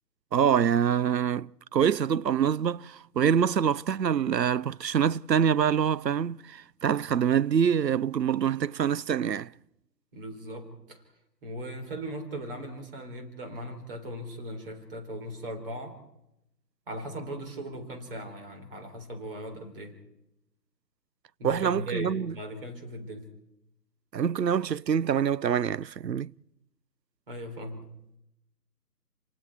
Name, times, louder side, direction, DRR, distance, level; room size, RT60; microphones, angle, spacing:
voice 1, 0.3-9.5 21.4-22.3 24.1-26.3, right 8 dB, 80° right, 0.6 m, -25 dB
voice 2, 10.1-11.0 11.4-16.0 16.9-20.0 21.4-23.3 27.3-27.9, right 1 dB, 35° right, 3.9 m, -38 dB
29.0 x 19.5 x 4.7 m
figure-of-eight pair, 150°, 49 cm